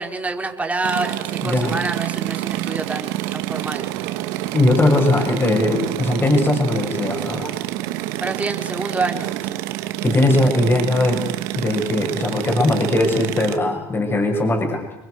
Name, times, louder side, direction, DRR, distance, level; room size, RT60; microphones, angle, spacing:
voice 1, 0.0-3.8 8.2-9.6, right 3 dB, 15° right, 3 dB, 4.6 m, -27 dB
sound 1, 0.8-13.6, right 15 dB, 80° right, 2.0 m, -28 dB
voice 2, 1.4-1.7 4.5-7.5 10.0-11.2 11.5-14.8, left 2 dB, 25° left, 2 dB, 7.6 m, -19 dB
30.0 x 23.0 x 6.6 m, 0.91 s
supercardioid pair, 95°, 9 cm